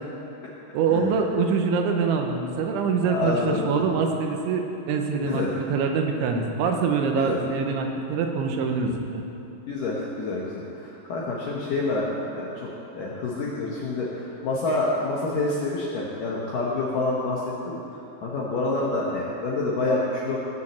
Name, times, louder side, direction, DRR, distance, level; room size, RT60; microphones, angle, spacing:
voice 1, 0.7-9.2, right 5 dB, 85° right, 3 dB, 3.3 m, -24 dB
voice 2, 3.0-3.8 5.3-5.5 7.2-7.4 9.7-12.7 12.9-17.4 17.7-17.8 18.2-20.4, left 2 dB, 70° left, -4 dB, 2.1 m, -27 dB
15.5 x 6.4 x 7.5 m, 2.9 s
omnidirectional pair, 5.4 m